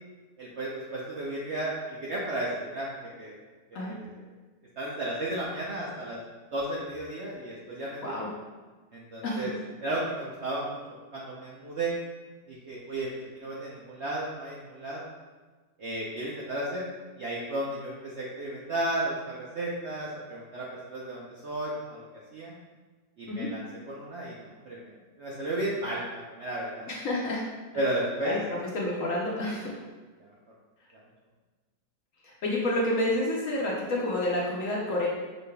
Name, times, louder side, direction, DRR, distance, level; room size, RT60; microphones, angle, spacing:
voice 1, 0.4-2.9 3.2-3.4 3.7-4.1 4.8-6.2 6.5-8.1 8.9-9.5 9.8-10.8 11.1-12.0 12.5-13.1 13.4-15.1 15.8-16.8 17.2-22.0 22.3-22.5 23.2-26.9 27.7-28.4 29.4-29.5 30.2-30.3, right 1 dB, 80° right, -6 dB, 0.6 m, -33 dB
voice 2, 26.9-27.4 28.2-28.4 28.7-29.7 32.2-35.1, left 1 dB, 65° left, -4 dB, 0.9 m, -29 dB
6.4 x 3.3 x 2.2 m, 1.3 s
omnidirectional pair, 2.0 m